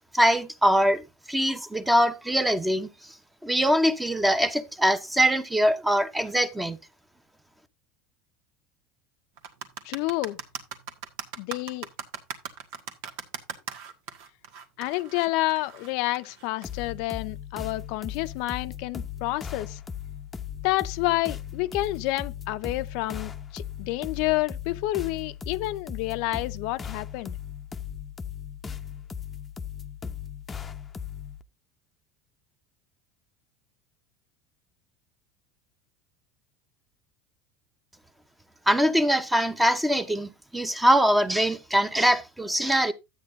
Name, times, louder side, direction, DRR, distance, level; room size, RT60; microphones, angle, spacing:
voice 1, 0.1-1.0 1.3-2.9 3.4-6.8 38.7-42.9, equal, 5° right, 0.8 m, -23 dB
sound 1, 9.4-16.9, right 7 dB, 75° right, 1.6 m, -39 dB
voice 2, 9.8-10.4 11.4-11.9 14.8-19.8 20.6-27.4, left 19 dB, 65° left, 0.5 m, -29 dB
sound 2, 16.6-31.4, left 8 dB, 20° left, 0.7 m, -38 dB
12.5 x 8.6 x 2.6 m
supercardioid pair, 135°, 0 cm